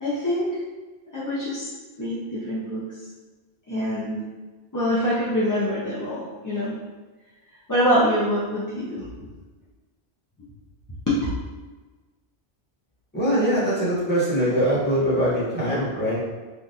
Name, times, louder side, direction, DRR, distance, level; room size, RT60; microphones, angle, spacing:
voice 1, 0.0-0.5 1.1-1.7 2.0-2.9 3.7-4.2 4.7-6.8 7.7-9.0 11.1-11.2, equal, 30° left, -10 dB, 0.4 m, -24 dB
voice 2, 13.1-16.2, equal, 10° left, -10 dB, 1.1 m, -22 dB
3.4 x 2.4 x 2.7 m, 1.3 s
omnidirectional pair, 1.1 m